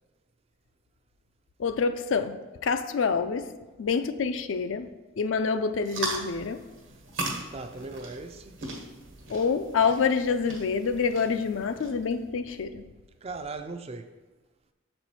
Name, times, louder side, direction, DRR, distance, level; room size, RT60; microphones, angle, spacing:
voice 1, 1.6-2.4 2.6-3.5 3.8-4.9 5.2-6.6 9.3-12.9, left 5 dB, 75° left, 0.4 m, -27 dB
sound 1, 5.8-12.1, right 2 dB, 75° right, 1.3 m, -38 dB
voice 2, 7.5-8.6 13.2-14.1, right 3 dB, 30° right, 0.4 m, -38 dB
6.8 x 4.4 x 4.2 m
head